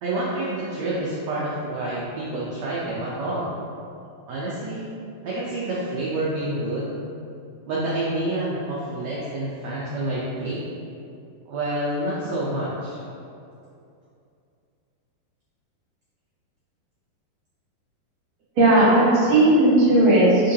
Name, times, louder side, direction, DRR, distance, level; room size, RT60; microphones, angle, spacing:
voice 1, 0.0-3.5 4.3-4.9 5.2-6.9 7.7-10.6 11.5-13.0, right 1 dB, 85° right, -7 dB, 1.5 m, -28 dB
voice 2, 18.6-20.5, right 1 dB, 55° right, -8 dB, 1.4 m, -16 dB
9.7 x 3.7 x 2.8 m, 2.6 s
omnidirectional pair, 4.2 m